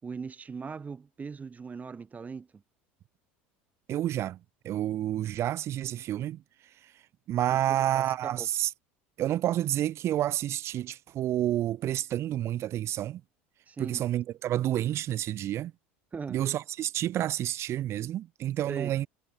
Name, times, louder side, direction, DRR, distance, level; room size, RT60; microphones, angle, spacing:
voice 1, 0.0-2.6 7.5-8.5 13.7-14.0 16.1-16.4 18.7-18.9, right 5 dB, 25° right, 5.9 m, -39 dB
voice 2, 3.9-4.4 4.6-6.4 6.8-6.9 7.3-8.7 9.2-13.2 13.8-15.7 16.3-19.1, right 12 dB, 50° right, 1.4 m, -29 dB
hypercardioid pair, 80°, 6 cm